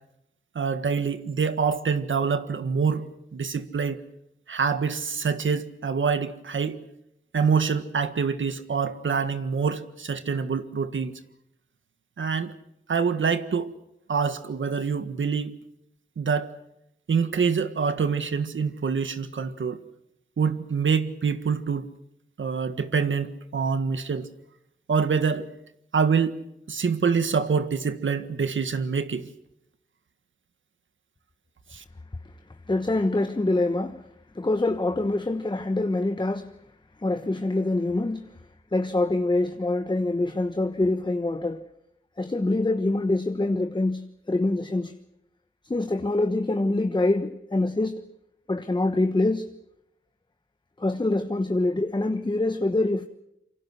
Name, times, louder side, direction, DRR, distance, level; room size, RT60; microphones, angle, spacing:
voice 1, 0.5-4.0 4.5-6.8 7.3-11.1 12.2-12.5 12.9-13.7 14.1-15.5 16.2-16.5 17.1-19.8 20.4-21.9 22.4-24.3 24.9-25.5 25.9-26.4 26.7-29.3 31.7-31.8, right 5 dB, 80° right, 1.6 m, -26 dB
voice 2, 32.7-34.0 34.3-36.5 37.0-38.3 38.7-41.6 42.2-44.9 45.6-48.0 48.5-49.5 50.8-53.1, left 2 dB, 25° left, 1.2 m, -25 dB
27.5 x 24.5 x 6.4 m
wide cardioid pair, 70°, 20 cm